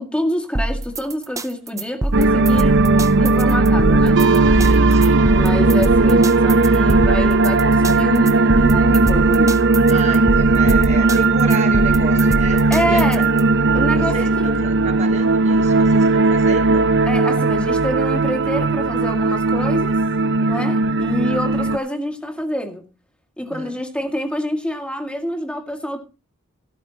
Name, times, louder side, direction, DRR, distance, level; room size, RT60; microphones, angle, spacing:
voice 1, 0.0-2.8 3.2-4.2 5.3-9.6 12.7-13.2 13.7-14.5 17.0-20.0 20.4-22.9 23.4-26.0, equal, 5° left, 2.0 m, -26 dB
sound 1, 0.6-13.4, right 1 dB, 15° right, 0.6 m, -25 dB
sound 2, 2.1-21.8, right 3 dB, 55° right, 0.7 m, -16 dB
voice 2, 4.6-5.3 9.9-12.6 12.9-13.2 14.0-16.9 20.5-21.0 23.5-23.8, right 3 dB, 35° right, 1.2 m, -31 dB
15.0 x 12.5 x 2.9 m
head